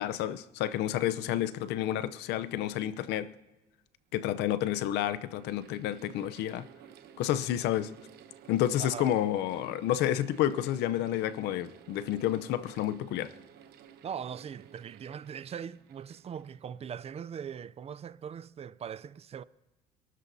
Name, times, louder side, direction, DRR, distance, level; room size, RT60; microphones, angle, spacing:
voice 1, 0.0-3.3 4.1-6.7 7.2-7.9 8.5-13.3, left 12 dB, 85° left, 0.7 m, -30 dB
Mechanical fan, 3.6-3.7 4.6-17.2, right 9 dB, 70° right, 1.0 m, -55 dB
voice 2, 14.0-19.4, right 8 dB, 35° right, 0.5 m, -40 dB
26.5 x 12.5 x 2.7 m
cardioid pair, 110°, 17 cm